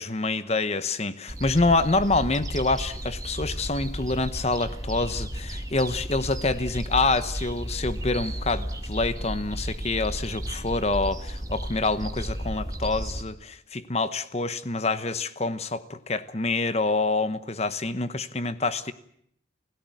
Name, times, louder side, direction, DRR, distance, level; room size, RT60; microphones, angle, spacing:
voice 1, 0.0-18.9, left 3 dB, 35° left, 1.1 m, -26 dB
sound 1, 1.3-13.2, equal, 20° right, 1.9 m, -33 dB
29.0 x 16.5 x 9.4 m
head